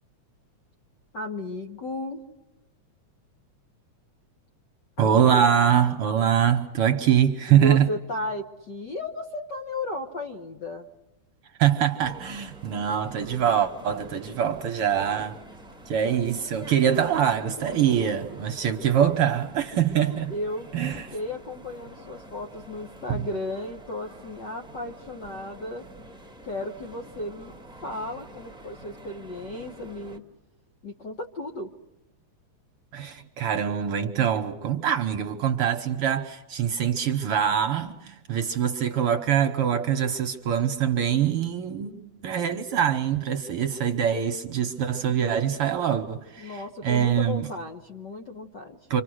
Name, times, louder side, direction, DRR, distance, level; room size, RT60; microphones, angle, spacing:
voice 1, 1.1-2.2 5.0-5.4 7.5-10.9 14.2-14.4 17.7-18.0 18.6-18.8 20.3-25.8 26.4-27.5 27.8-30.2 30.8-31.7 45.0-45.3 46.4-48.8, left 2 dB, 50° left, 1.4 m, -35 dB
voice 2, 5.0-7.9 11.6-15.4 15.9-20.3 20.7-21.1 23.1-23.2 32.9-42.0 42.2-47.5 48.9-49.0, right 9 dB, 60° right, 1.7 m, -24 dB
sound 1, 12.0-30.2, right 1 dB, ahead, 1.1 m, -46 dB
29.0 x 25.5 x 6.3 m
omnidirectional pair, 3.3 m